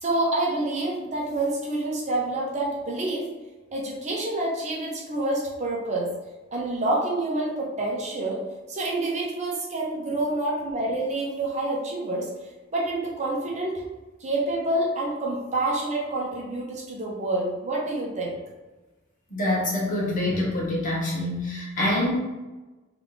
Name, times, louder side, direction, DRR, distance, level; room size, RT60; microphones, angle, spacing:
voice 1, 0.0-3.3 3.7-6.1 6.5-8.4 8.7-12.3 12.7-13.8 14.2-18.4, right 2 dB, 35° right, -3 dB, 0.9 m, -27 dB
voice 2, 19.3-22.2, left 1 dB, 45° left, -4 dB, 1.2 m, -25 dB
3.6 x 2.8 x 3.7 m, 1.1 s
head